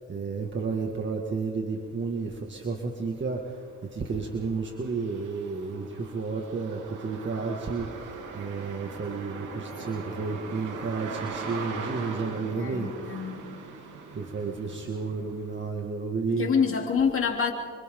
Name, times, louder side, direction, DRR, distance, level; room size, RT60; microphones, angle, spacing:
voice 1, 0.1-3.4 3.9-7.9 8.3-13.3 14.2-16.5, right 4 dB, 40° right, 1 dB, 2.3 m, -32 dB
sound 1, 2.3-2.4 2.8-15.7, right 4 dB, 85° right, 3.2 m, -41 dB
voice 2, 12.4-13.4 16.3-17.5, left 6 dB, 45° left, 1 dB, 3.8 m, -27 dB
29.0 x 25.5 x 3.9 m, 2.1 s
cardioid pair, 90°, 30 cm